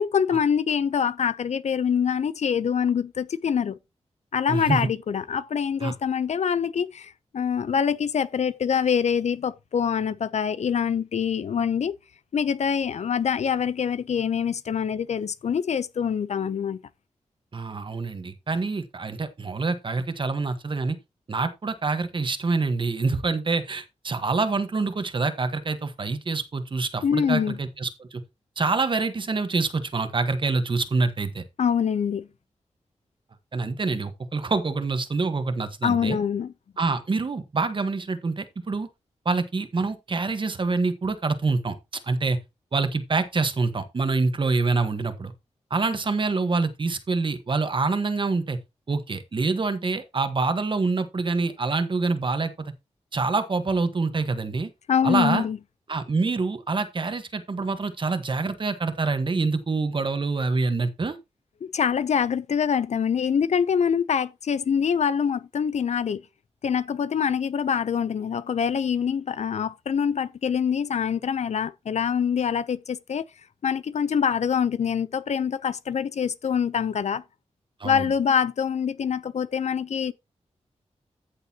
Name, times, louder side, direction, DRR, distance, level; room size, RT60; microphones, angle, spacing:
voice 1, 0.0-3.8 4.3-11.9 12.3-16.8 27.0-27.6 31.6-32.3 35.8-36.5 54.9-55.6 61.6-66.2 66.6-73.2 73.6-77.2 77.8-80.1, left 7 dB, 75° left, 0.6 m, -25 dB
voice 2, 4.5-4.9 5.8-5.9 17.5-21.0 21.3-28.2 28.6-31.4 33.5-36.2 36.8-38.9 39.2-41.8 42.0-42.4 42.7-45.3 45.7-48.6 48.9-52.7 53.1-54.7 55.0-55.4 55.9-61.2 77.8-78.1, right 3 dB, 45° right, 1.3 m, -26 dB
14.0 x 6.6 x 2.9 m
wide cardioid pair, 115°, 12 cm